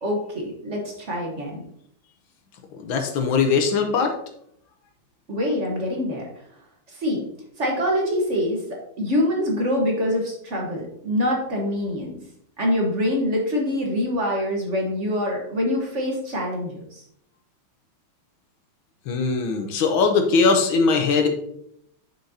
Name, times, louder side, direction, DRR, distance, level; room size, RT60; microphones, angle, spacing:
voice 1, 0.0-1.6 5.3-6.3 6.9-7.2 7.6-12.2 12.6-17.0, left 1 dB, 40° right, 0 dB, 1.3 m, -25 dB
voice 2, 2.8-4.1 19.1-21.3, left 4 dB, 75° left, 5 dB, 1.7 m, -20 dB
6.6 x 6.2 x 2.8 m, 0.70 s
omnidirectional pair, 2.2 m